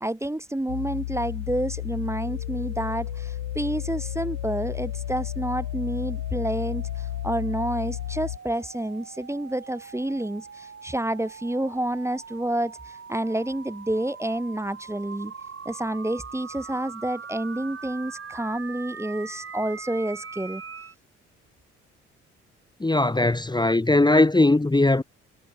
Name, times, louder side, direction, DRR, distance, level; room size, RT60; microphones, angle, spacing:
voice 1, 0.0-15.3 15.7-20.6, right 1 dB, 10° right, 1.8 m, -29 dB
sound 1, 0.7-8.4, left 15 dB, 85° left, 0.8 m, -32 dB
sound 2, 2.1-20.9, right 6 dB, 35° right, 7.6 m, -42 dB
voice 2, 22.8-25.0, left 2 dB, 10° left, 1.6 m, -19 dB
hypercardioid pair, 50°, 35 cm